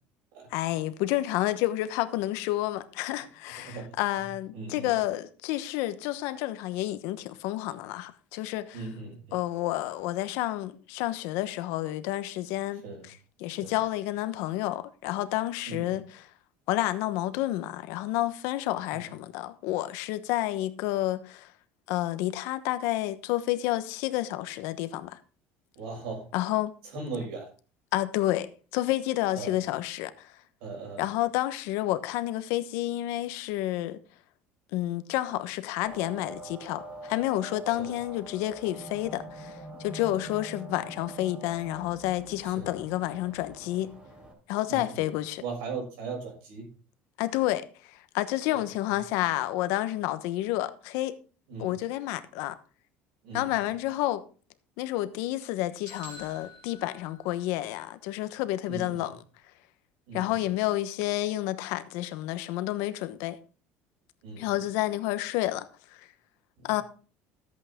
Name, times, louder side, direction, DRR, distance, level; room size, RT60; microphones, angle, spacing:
voice 1, 0.5-8.8 9.3-12.8 13.1-16.3 16.7-21.5 21.9-25.2 26.3-26.7 27.9-30.3 31.0-34.0 34.7-43.9 44.5-45.4 47.2-51.2 51.6-52.6 53.3-54.2 54.8-59.1 60.1-63.4 64.4-66.1 66.6-66.8, left 15 dB, 75° left, 1.0 m, -30 dB
voice 2, 3.6-4.0 4.5-4.9 8.7-9.4 12.8-13.1 13.6-13.8 15.7-15.9 18.9-19.0 25.7-26.3 26.9-27.5 29.3-29.6 30.6-31.0 37.8-37.9 40.1-40.2 42.4-42.7 44.7-45.1 45.4-46.6 48.5-48.6 51.5-51.7 53.2-53.8 58.7-59.1 60.1-60.3 64.2-64.6 66.6-66.7, right 4 dB, 85° right, 6.8 m, -39 dB
sound 1, 35.8-44.3, right 1 dB, 25° right, 3.3 m, -44 dB
sound 2, 55.9-57.8, left 1 dB, 70° right, 4.1 m, -48 dB
13.5 x 8.5 x 3.7 m
cardioid pair, 145°, 5 cm